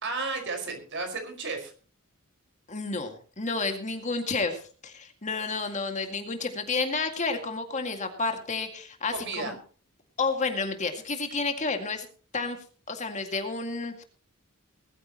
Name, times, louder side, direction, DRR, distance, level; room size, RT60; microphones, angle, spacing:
voice 1, 0.0-1.7 9.1-9.5, right 3 dB, 55° right, 5 dB, 5.2 m, -33 dB
voice 2, 2.7-9.6 10.2-12.1 12.3-12.6 12.9-14.0, left 4 dB, 35° left, 5 dB, 2.1 m, -30 dB
20.0 x 14.0 x 3.0 m, 0.39 s
head